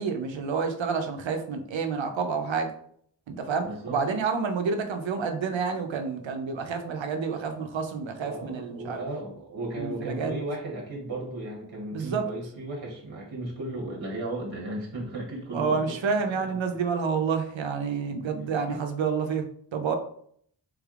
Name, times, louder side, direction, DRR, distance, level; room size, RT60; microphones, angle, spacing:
voice 1, 0.0-2.7 3.3-9.0 9.8-10.3 11.9-12.3 15.5-19.5 19.7-19.9, right 5 dB, 80° right, 6 dB, 0.6 m, -29 dB
voice 2, 3.6-4.2 8.2-16.5 18.4-18.8, right 1 dB, 55° right, -2 dB, 1.1 m, -36 dB
3.5 x 3.3 x 2.4 m, 0.63 s
cardioid pair, 40°, 45 cm